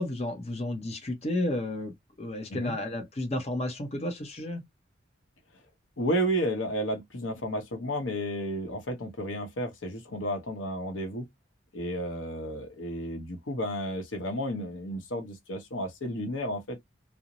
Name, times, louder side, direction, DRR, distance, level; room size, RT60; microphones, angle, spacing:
voice 1, 0.0-4.6, left 1 dB, 35° left, 0.7 m, -32 dB
voice 2, 6.0-11.3 11.7-16.8, equal, 90° left, 0.8 m, -32 dB
2.5 x 2.0 x 2.9 m
head